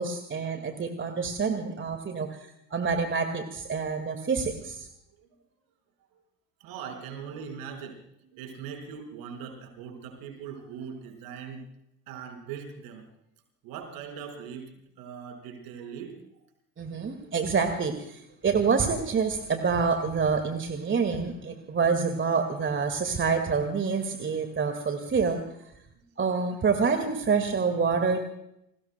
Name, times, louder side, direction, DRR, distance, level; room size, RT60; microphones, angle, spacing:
voice 1, 0.0-2.4 2.7-4.9 16.8-25.4 26.2-28.2, right 5 dB, 30° right, 7 dB, 2.0 m, -27 dB
voice 2, 6.6-11.6 12.1-13.1 13.6-14.7 15.0-16.2 17.0-17.2 18.3-18.4, right 7 dB, 60° right, 4 dB, 5.2 m, -41 dB
30.0 x 20.5 x 2.3 m, 0.79 s
figure-of-eight pair, 60°, 41 cm